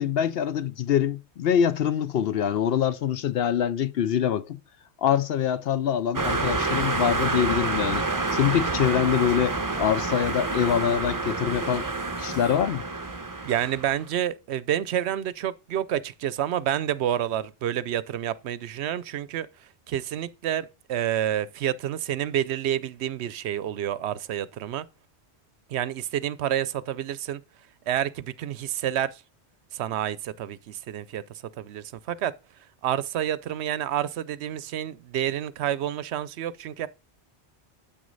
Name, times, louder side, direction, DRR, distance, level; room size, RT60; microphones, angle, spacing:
voice 1, 0.0-4.6 5.0-8.0 8.3-11.9 12.2-12.8, left 9 dB, 65° left, 0.7 m, -24 dB
sound 1, 6.1-14.0, right 3 dB, 20° right, 0.6 m, -28 dB
voice 2, 13.4-19.5 19.9-24.8 25.7-27.4 27.9-29.2 29.7-31.2 31.6-32.3 32.8-36.9, right 11 dB, 75° right, 0.8 m, -29 dB
8.1 x 6.3 x 3.9 m
omnidirectional pair, 1.2 m